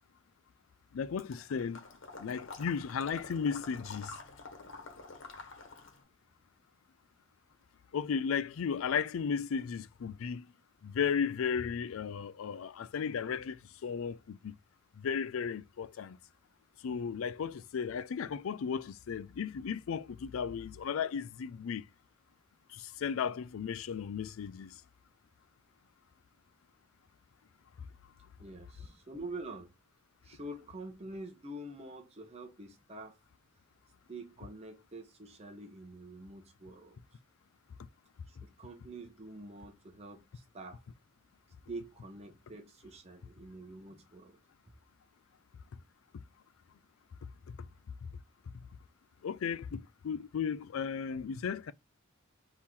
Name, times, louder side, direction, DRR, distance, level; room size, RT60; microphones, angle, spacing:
voice 1, 0.9-1.8 2.2-4.2 7.9-10.5 10.8-14.5 15.0-16.2 16.8-21.8 22.7-24.8 49.2-51.7, left 6 dB, 90° left, 0.4 m, -35 dB
Water / Liquid, 1.2-6.0, left 3 dB, 65° left, 1.2 m, -48 dB
voice 2, 28.4-29.7 30.2-33.2 34.1-37.2 38.3-40.8 41.7-44.4, right 2 dB, 30° right, 0.8 m, -46 dB
3.7 x 3.0 x 4.1 m
head